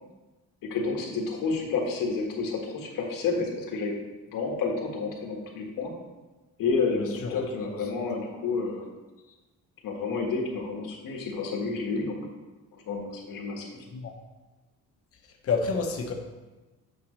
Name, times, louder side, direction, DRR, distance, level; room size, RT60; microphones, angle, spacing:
voice 1, 0.7-4.0 4.3-5.9 6.6-8.9 9.8-12.2 12.9-13.8, left 4 dB, 90° left, 0 dB, 1.5 m, -30 dB
voice 2, 7.0-7.4 7.7-7.8 13.9-14.1 15.4-16.1, left 4 dB, 45° left, 3 dB, 0.9 m, -29 dB
8.7 x 5.4 x 3.2 m, 1.2 s
cardioid pair, 155°, 33 cm